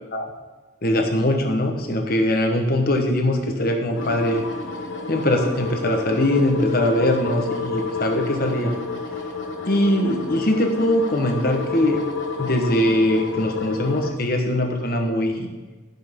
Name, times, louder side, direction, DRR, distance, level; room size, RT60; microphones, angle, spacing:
voice 1, 0.8-4.4 5.1-8.7 9.6-12.0 12.4-15.5, left 1 dB, 50° left, 3 dB, 1.2 m, -21 dB
sound 1, 3.9-14.1, left 4 dB, 80° left, 1.2 m, -30 dB
15.0 x 6.1 x 3.7 m, 1.3 s
head